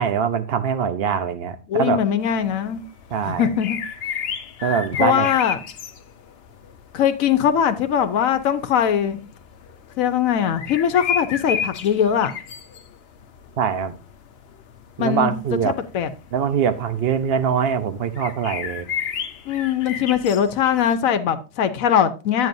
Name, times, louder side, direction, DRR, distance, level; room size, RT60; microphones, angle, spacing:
voice 1, 0.0-2.0 3.1-3.5 4.6-5.3 13.6-14.0 15.0-15.7 16.3-18.9, right 7 dB, 55° right, 0.9 m, -23 dB
voice 2, 1.7-2.8 3.2-3.8 5.0-5.6 6.9-9.2 10.0-12.3 15.0-15.3 15.6-16.1 19.5-22.5, left 8 dB, 90° left, 1.1 m, -21 dB
sound 1, 2.2-21.0, left 7 dB, 55° left, 0.9 m, -34 dB
9.1 x 8.2 x 2.6 m
omnidirectional pair, 1.4 m